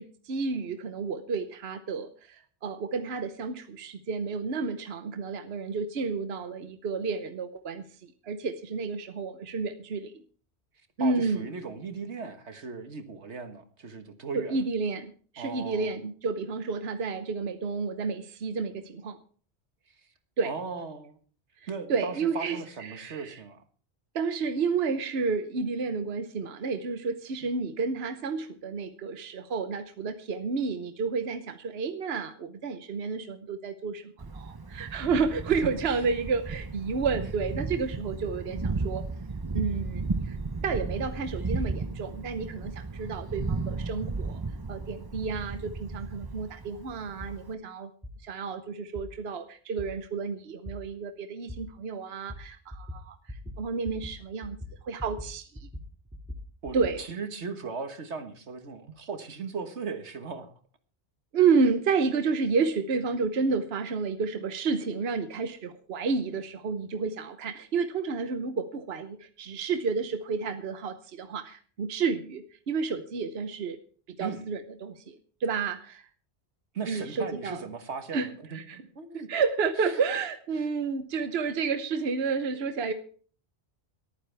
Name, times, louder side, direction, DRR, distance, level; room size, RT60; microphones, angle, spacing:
voice 1, 0.0-10.2 11.0-11.5 14.3-19.2 20.4-20.5 21.6-23.4 24.1-39.1 39.5-40.4 40.6-44.4 44.7-47.9 48.2-54.6 54.8-55.7 56.7-57.0 61.3-73.8 74.1-76.0 76.8-77.6 78.1-78.8 79.1-82.9, right 5 dB, 70° right, 9 dB, 1.2 m, -31 dB
voice 2, 11.0-14.5 15.4-15.9 20.4-21.2 21.7-23.6 35.5-35.7 56.6-60.5 74.2-74.4 76.7-79.3 79.8-80.0, right 5 dB, 90° right, 8 dB, 1.8 m, -37 dB
Thunder, 34.2-47.5, right 3 dB, 25° right, 0.7 m, -35 dB
sound 1, 45.3-45.5 46.3-46.4 47.2-47.3 48.0-48.1 49.0-49.1 49.8-49.9 50.7-50.8 51.5-51.6 52.3-52.4 52.7-53.0 53.3-53.6 53.8-54.1 54.4-55.3 55.6-57.0, left 1 dB, 5° right, 2.1 m, -40 dB
22.5 x 9.4 x 3.4 m, 0.43 s
omnidirectional pair, 1.1 m